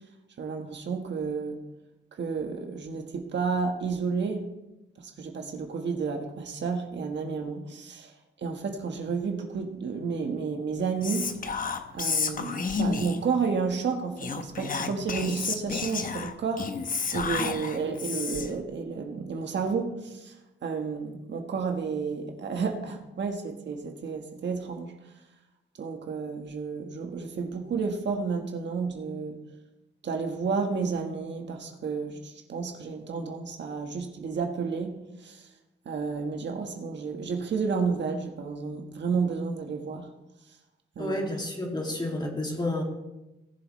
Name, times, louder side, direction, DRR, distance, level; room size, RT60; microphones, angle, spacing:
voice 1, 0.4-1.6 2.2-4.4 5.0-8.1 8.4-11.3 11.9-16.7 17.1-20.3 20.6-24.9 25.8-29.4 30.0-35.5 35.8-40.1 40.9-41.1, right 5 dB, 65° right, 3 dB, 1.5 m, -31 dB
Whispering, 11.0-13.3 14.2-18.6, left 5 dB, 45° left, 0.9 m, -31 dB
voice 2, 41.0-42.8, left 1 dB, 20° left, 0 dB, 2.5 m, -30 dB
19.0 x 7.2 x 3.2 m, 0.96 s
cardioid pair, 105°, 20 cm